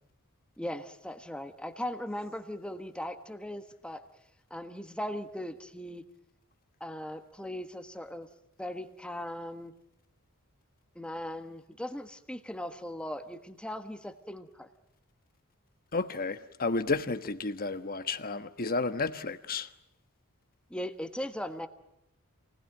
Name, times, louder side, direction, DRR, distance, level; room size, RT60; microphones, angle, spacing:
voice 1, 0.6-4.0 4.5-6.0 6.8-8.3 8.6-9.7 10.9-14.7 20.7-21.7, left 1 dB, 5° left, 1.4 m, -38 dB
voice 2, 15.9-19.7, left 3 dB, 40° left, 1.3 m, -32 dB
28.5 x 20.0 x 9.1 m
head